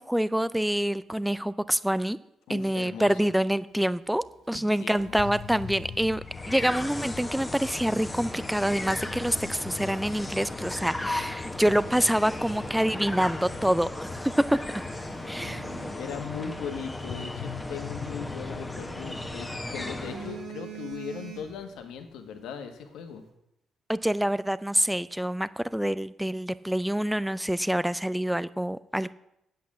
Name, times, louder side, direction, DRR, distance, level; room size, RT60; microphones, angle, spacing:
voice 1, 0.0-2.2 2.5-6.2 6.5-14.6 15.3-15.6 23.9-29.1, equal, 5° right, 16 dB, 0.4 m, -26 dB
voice 2, 2.5-3.3 4.5-5.2 15.4-23.2, left 6 dB, 85° left, 6 dB, 1.5 m, -39 dB
Telephone, 4.0-6.5 7.8-9.7 10.3-10.5 11.0-11.1 11.5-13.5 13.8-13.9 14.4-16.8 18.3-19.3 19.7-21.8 22.1-22.4, right 7 dB, 85° right, 3.9 m, -47 dB
sound 1, 5.0-15.1 17.1-22.1, left 8 dB, 60° left, 0.7 m, -45 dB
sound 2, 6.2-20.5, left 2 dB, 15° left, 1.2 m, -36 dB
8.5 x 8.2 x 7.5 m, 0.82 s
cardioid pair, 90°, 0 cm